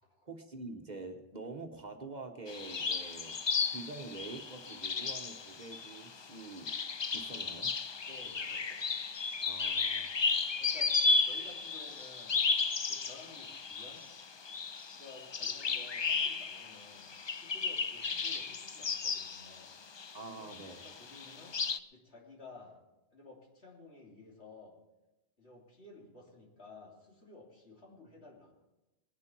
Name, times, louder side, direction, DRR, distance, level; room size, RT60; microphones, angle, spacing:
voice 1, 0.2-3.4 3.7-6.7 7.1-7.7 9.5-10.4 20.1-20.9, right 3 dB, 40° right, 4 dB, 1.2 m, -46 dB
sound 1, 2.5-20.2 20.5-21.8, left 4 dB, 45° left, 0.3 m, -34 dB
voice 2, 8.0-8.9 10.6-12.4 12.9-14.1 14.9-19.7 20.2-21.6 21.9-22.8 23.1-24.8 25.4-28.5, left 3 dB, 70° left, -2 dB, 3.3 m, -54 dB
21.0 x 10.5 x 4.5 m, 0.96 s
omnidirectional pair, 1.2 m